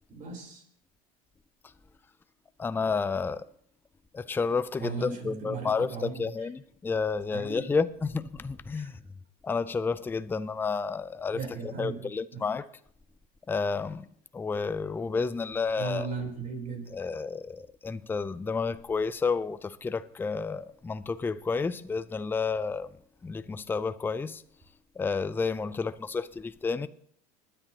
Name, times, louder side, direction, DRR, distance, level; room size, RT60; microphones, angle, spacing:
voice 1, 0.1-0.6 4.8-6.1 7.3-7.6 8.7-8.9 11.3-12.0 12.3-12.4 15.8-16.9, right 5 dB, 45° right, 3.8 m, -36 dB
voice 2, 2.6-3.5 4.1-9.0 9.4-12.6 13.5-14.1 14.3-16.1 16.9-22.9 23.2-24.4 25.0-26.9, left 4 dB, 10° left, 0.4 m, -31 dB
24.5 x 10.0 x 2.9 m
supercardioid pair, 100°, 19 cm